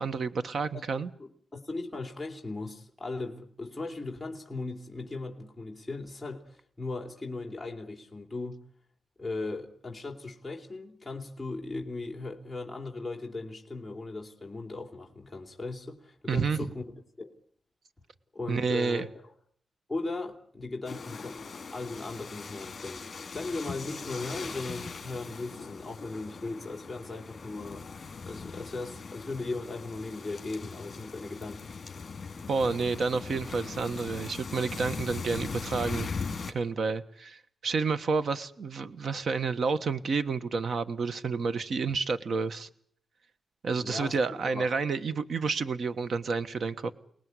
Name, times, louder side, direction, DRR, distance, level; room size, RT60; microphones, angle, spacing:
voice 1, 0.0-1.1 16.3-16.7 18.5-19.1 32.5-36.1 36.5-42.7 43.6-46.9, right 4 dB, 60° right, 1.4 m, -30 dB
voice 2, 1.2-8.6 9.2-16.8 17.2-17.3 18.3-19.1 19.9-27.9 28.2-31.6 43.7-44.2 44.5-44.7, left 3 dB, 5° left, 3.4 m, -38 dB
sound 1, 20.8-36.5, left 5 dB, 40° left, 4.4 m, -40 dB
29.5 x 19.5 x 9.7 m
wide cardioid pair, 130°, 0 cm